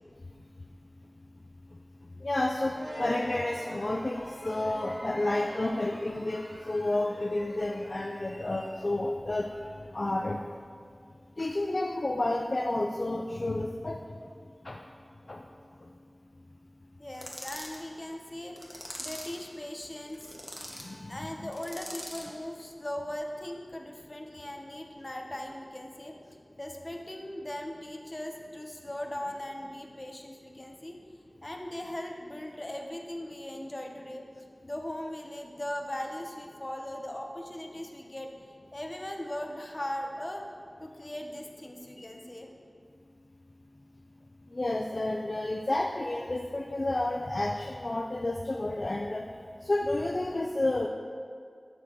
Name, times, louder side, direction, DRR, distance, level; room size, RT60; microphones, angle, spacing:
voice 1, 1.7-10.4 11.4-14.2 14.6-14.8 15.3-15.5 15.8-15.9 20.6-21.2 42.0-42.1 44.5-49.3 49.6-50.9, left 2 dB, 60° left, 1 dB, 0.4 m, -31 dB
sound 1, 2.7-9.1, equal, 75° right, 1.8 m, -44 dB
voice 2, 17.0-20.2 21.1-26.1 26.6-31.0 31.4-34.3 34.6-38.3 38.7-40.5 40.8-42.5, left 1 dB, 35° left, 2 dB, 0.9 m, -39 dB
sound 2, 17.1-17.8 18.6-19.4 20.1-20.9 21.5-22.3, equal, ahead, 1.4 m, -42 dB
11.0 x 7.2 x 3.0 m, 2.1 s
wide cardioid pair, 45°, 0 cm